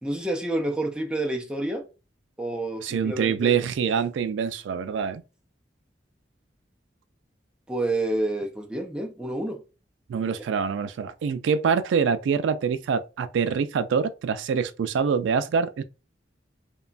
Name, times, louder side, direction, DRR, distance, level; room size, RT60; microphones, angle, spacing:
voice 1, 0.0-1.9 2.4-3.6 7.7-9.6 10.2-10.4, right 1 dB, 5° right, 0.4 m, -29 dB
voice 2, 2.8-5.2 10.1-15.8, right 6 dB, 85° right, 0.3 m, -25 dB
2.9 x 2.2 x 2.4 m
head